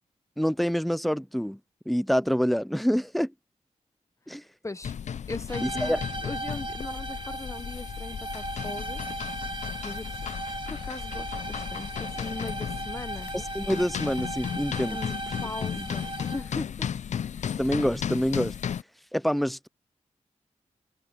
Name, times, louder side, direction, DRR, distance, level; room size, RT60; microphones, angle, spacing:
voice 1, 0.4-1.6 1.9-3.3 4.3-4.4 5.6-6.0 13.3-15.0 15.8-15.9 17.6-18.6 19.1-19.7, equal, ahead, 0.4 m, -26 dB
sound 1, 4.8-18.8, left 8 dB, 70° left, 0.4 m, -35 dB
voice 2, 5.3-9.0 9.8-10.3 10.6-13.3 14.9-16.9, left 2 dB, 25° left, 0.8 m, -39 dB
sound 2, 5.5-16.6, right 2 dB, 40° right, 1.3 m, -37 dB
cardioid pair, 65°, 13 cm